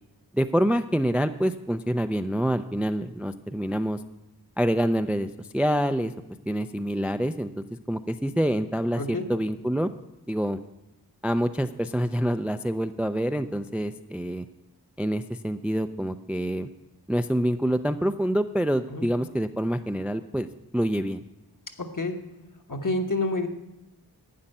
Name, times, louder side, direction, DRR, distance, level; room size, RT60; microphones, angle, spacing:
voice 1, 0.3-4.0 4.6-6.1 6.5-9.9 10.3-10.6 11.2-14.5 15.0-16.7 17.1-20.5 20.7-21.2, equal, 5° right, 9 dB, 0.4 m, -26 dB
voice 2, 9.0-9.3 18.9-19.1 21.8-22.2 22.7-23.5, left 2 dB, 50° left, 4 dB, 1.3 m, -28 dB
11.5 x 8.7 x 5.4 m, 0.95 s
wide cardioid pair, 50°, 41 cm